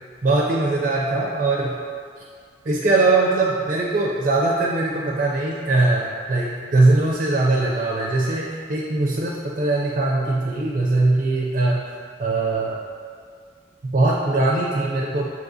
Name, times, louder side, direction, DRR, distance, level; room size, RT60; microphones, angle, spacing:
voice 1, 0.2-1.8 2.6-11.9 12.2-12.8 13.8-15.3, right 2 dB, 40° right, -3 dB, 0.4 m, -21 dB
5.9 x 2.8 x 2.6 m, 2.1 s
head